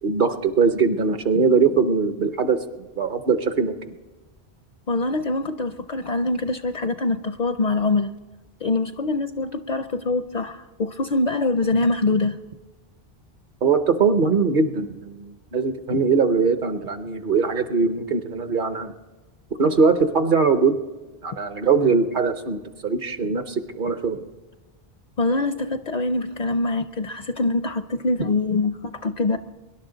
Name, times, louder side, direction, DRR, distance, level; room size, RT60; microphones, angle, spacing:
voice 1, 0.0-2.6 2.9-3.9 13.6-18.9 19.6-20.8 21.2-24.2, right 5 dB, 55° right, 9 dB, 0.9 m, -21 dB
voice 2, 4.9-8.1 8.6-12.4 25.2-29.4, left 3 dB, 55° left, 10 dB, 0.5 m, -24 dB
23.5 x 11.0 x 3.9 m, 1.2 s
omnidirectional pair, 1.0 m